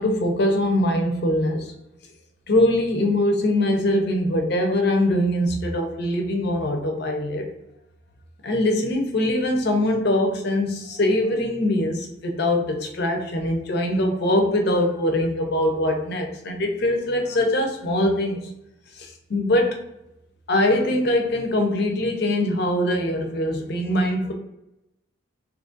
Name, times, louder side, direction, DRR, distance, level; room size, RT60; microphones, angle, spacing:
voice 1, 0.0-1.7 2.5-7.5 8.4-18.5 18.9-19.8 20.5-24.3, left 1 dB, 55° left, 3 dB, 0.6 m, -22 dB
2.9 x 2.5 x 3.8 m, 0.89 s
head